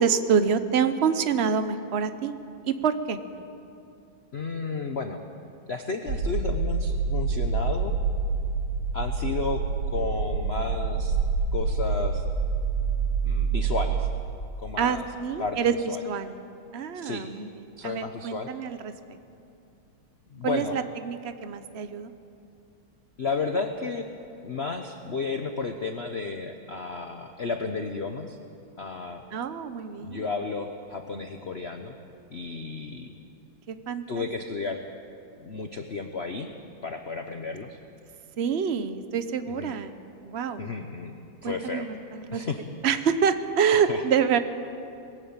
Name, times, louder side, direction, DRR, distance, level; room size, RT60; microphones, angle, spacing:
voice 1, 0.0-2.4 2.7-3.2 14.8-15.7 16.0-16.4 16.7-18.9 20.4-22.1 29.3-30.3 33.7-34.3 38.4-39.9 40.2-40.6 41.4-42.4 42.8-44.4, right 7 dB, 55° right, 10 dB, 0.7 m, -26 dB
voice 2, 4.3-5.2 5.7-8.0 8.9-9.6 9.9-11.2 11.5-12.2 13.2-14.1 14.6-15.1 15.4-15.6 15.9-16.0 16.9-17.3 17.8-18.5 20.3-20.8 23.2-24.1 24.4-28.4 28.8-29.2 30.0-32.0 32.3-33.1 34.1-34.8 35.4-36.5 36.8-37.8 39.5-39.8 40.6-41.2 41.4-41.9 42.3-42.6 43.7-44.0, left 4 dB, 50° left, 6 dB, 0.8 m, -32 dB
sound 1, 6.1-14.1, right 5 dB, 75° right, 3.0 m, -27 dB
21.5 x 15.5 x 8.9 m, 2.6 s
omnidirectional pair, 2.4 m